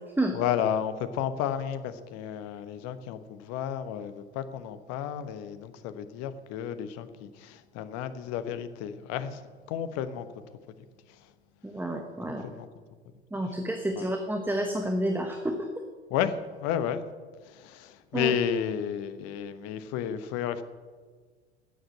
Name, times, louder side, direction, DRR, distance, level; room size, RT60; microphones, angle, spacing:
voice 1, 0.3-9.4 9.7-10.3 11.1-11.2 12.4-12.7 14.0-14.1 16.1-17.0 17.4-20.6, left 9 dB, 50° left, 1.1 m, -32 dB
voice 2, 11.6-12.4 13.3-15.7 18.1-18.3, right 1 dB, 5° right, 1.2 m, -29 dB
12.5 x 7.9 x 8.2 m
figure-of-eight pair, 75°, 33 cm